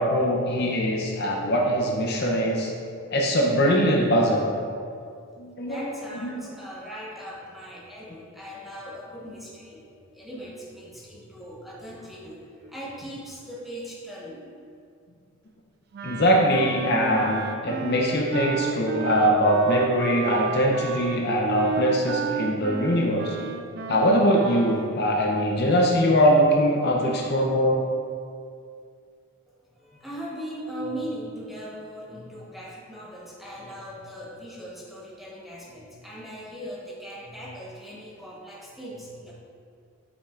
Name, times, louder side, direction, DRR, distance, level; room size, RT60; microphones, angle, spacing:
voice 1, 0.0-2.7 3.1-4.5 5.4-6.4 16.0-23.4 23.9-27.8, equal, 45° left, -1 dB, 0.6 m, -22 dB
voice 2, 5.7-14.6 29.5-39.3, equal, ahead, -7 dB, 1.0 m, -39 dB
Wind instrument woodwind instrument, 15.9-24.9, right 5 dB, 45° right, 0.3 m, -33 dB
8.2 x 5.5 x 2.5 m, 2.3 s
head